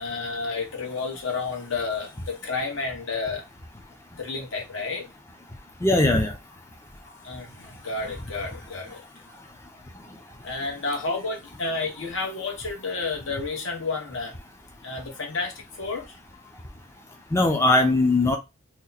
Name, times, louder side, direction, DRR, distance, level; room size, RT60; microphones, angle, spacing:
voice 1, 0.0-3.4 4.2-5.0 7.1-9.0 10.4-14.3 14.8-16.1, left 3 dB, 65° left, 1.2 m, -31 dB
voice 2, 5.8-6.3 17.3-18.4, left 2 dB, 10° left, 0.5 m, -19 dB
3.0 x 2.2 x 4.0 m
head